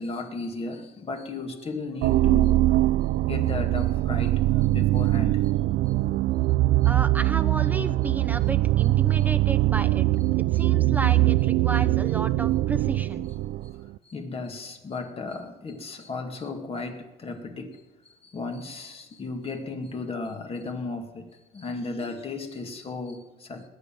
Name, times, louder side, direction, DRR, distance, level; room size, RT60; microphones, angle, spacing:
voice 1, 0.0-2.5 3.2-5.4 14.1-17.8 18.3-21.3 21.5-23.6, left 3 dB, 35° left, 4 dB, 2.1 m, -35 dB
sound 1, 2.0-13.9, right 16 dB, 75° right, 0.4 m, -22 dB
voice 2, 6.8-10.1 10.3-13.2, right 3 dB, 10° right, 7 dB, 0.9 m, -33 dB
20.5 x 8.9 x 6.0 m, 1.1 s
cardioid pair, 110°, 17 cm